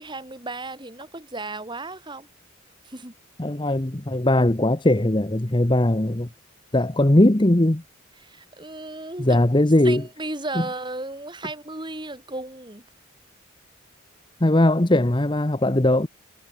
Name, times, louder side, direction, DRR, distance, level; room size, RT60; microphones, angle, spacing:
voice 1, 0.0-2.3 2.8-3.1 8.2-9.4 9.8-12.8, right 2 dB, 20° right, 3.5 m, -34 dB
voice 2, 3.4-6.3 6.7-7.8 9.2-10.0 14.4-16.1, left 1 dB, 25° left, 1.0 m, -19 dB
head